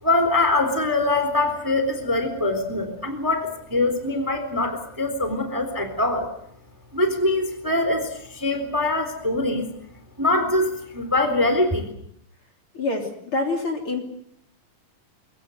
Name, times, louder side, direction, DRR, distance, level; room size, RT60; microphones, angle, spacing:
voice 1, 0.0-6.3 6.9-9.7 10.2-11.9, left 2 dB, 5° right, 8 dB, 3.3 m, -23 dB
voice 2, 12.7-14.0, left 2 dB, 40° left, 3 dB, 3.8 m, -26 dB
24.0 x 22.0 x 7.9 m, 0.71 s
omnidirectional pair, 4.0 m